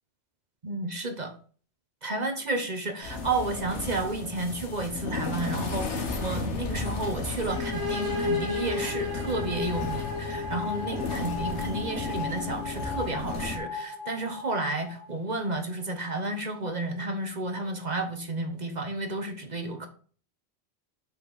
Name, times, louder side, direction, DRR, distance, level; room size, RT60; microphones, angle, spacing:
voice 1, 0.6-1.3 2.0-19.9, right 2 dB, 40° right, 6 dB, 1.2 m, -32 dB
sound 1, 3.0-13.6, left 3 dB, 75° left, 1.6 m, -34 dB
sound 2, 7.5-15.1, left 3 dB, 85° right, 2.1 m, -34 dB
7.2 x 5.7 x 4.1 m, 0.42 s
omnidirectional pair, 1.2 m